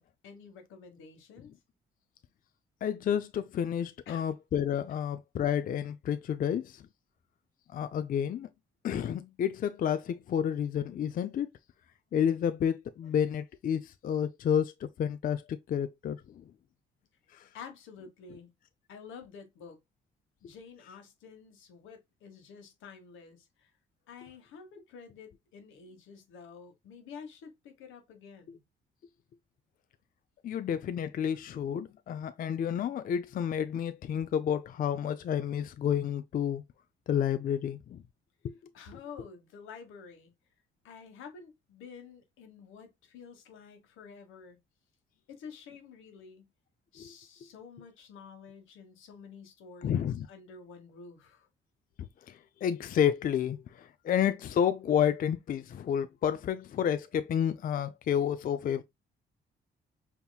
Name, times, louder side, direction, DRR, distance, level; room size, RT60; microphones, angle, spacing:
voice 1, 0.0-1.5 4.1-4.3 17.5-18.5 18.9-19.8 20.4-23.7 24.1-28.6 38.7-40.3 40.8-44.6 45.3-46.5 46.9-51.5, left 6 dB, 85° left, 1.3 m, -50 dB
voice 2, 2.8-6.8 7.7-8.5 8.8-11.5 12.1-16.2 17.3-17.5 30.4-36.6 37.1-38.0 38.4-38.5 47.0-47.1 49.8-50.3 52.3-58.8, left 9 dB, 45° left, 0.4 m, -30 dB
5.4 x 2.9 x 2.2 m
cardioid pair, 90°, 20 cm